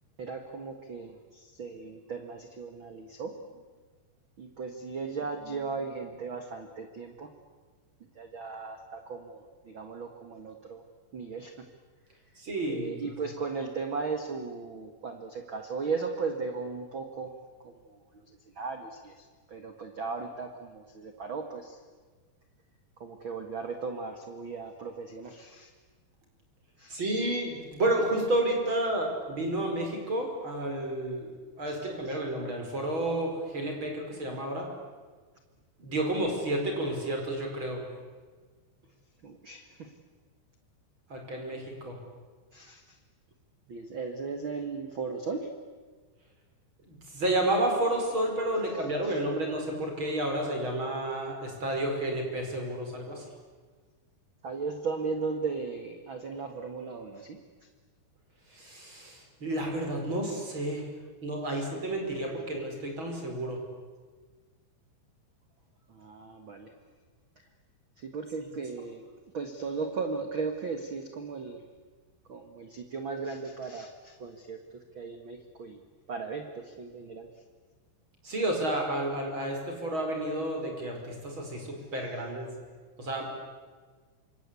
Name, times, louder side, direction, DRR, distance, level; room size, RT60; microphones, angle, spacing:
voice 1, 0.2-3.6 4.4-7.3 8.1-10.8 11.1-11.7 12.7-17.4 17.6-21.8 23.0-25.7 26.8-27.0 31.7-32.2 39.2-39.9 42.5-43.0 43.7-45.5 49.0-49.2 54.4-57.4 61.5-61.6 65.9-66.7 67.3-67.4 68.0-69.1 69.3-71.6 72.3-74.6 74.9-75.8 76.1-77.3, right 4 dB, 65° right, 6 dB, 1.2 m, -37 dB
voice 2, 12.4-13.0 26.9-34.7 35.8-37.9 41.1-42.0 46.9-53.3 58.5-60.9 61.2-63.6 78.2-82.5 83.0-83.2, right 1 dB, 25° right, 2 dB, 5.6 m, -31 dB
27.5 x 25.0 x 8.4 m, 1.4 s
omnidirectional pair, 5.1 m